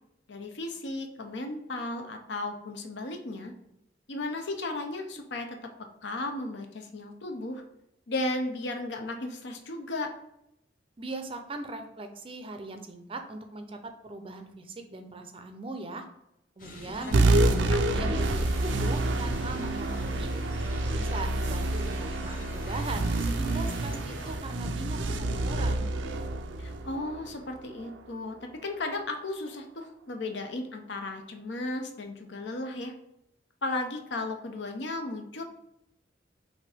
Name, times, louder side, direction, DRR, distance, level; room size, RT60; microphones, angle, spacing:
voice 1, 0.3-3.5 4.1-5.6 6.0-7.6 8.1-10.1 17.0-17.1 17.9-18.1 26.6-32.9 33.6-35.4, left 2 dB, 70° left, 4 dB, 0.7 m, -35 dB
voice 2, 11.0-16.1 16.6-20.3 20.7-25.9, right 2 dB, 30° right, 6 dB, 0.5 m, -39 dB
sound 1, 16.6-24.4, left 1 dB, 45° left, 1.0 m, -45 dB
sound 2, 17.1-28.0, right 2 dB, 85° right, 0.5 m, -28 dB
5.8 x 2.7 x 3.4 m, 0.81 s
head